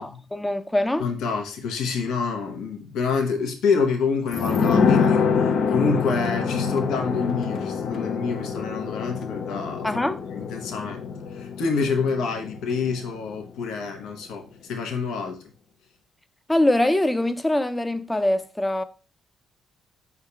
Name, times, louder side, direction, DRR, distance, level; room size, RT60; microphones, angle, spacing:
voice 1, 0.0-1.1 9.8-10.2 16.5-18.8, left 1 dB, 10° left, 0.6 m, -23 dB
voice 2, 1.0-9.9 10.3-15.4, left 5 dB, 85° left, 1.3 m, -27 dB
sound 1, 4.3-13.6 13.9-14.0, left 5 dB, 65° left, 0.7 m, -25 dB
5.6 x 3.7 x 4.7 m
cardioid pair, 90°, 0 cm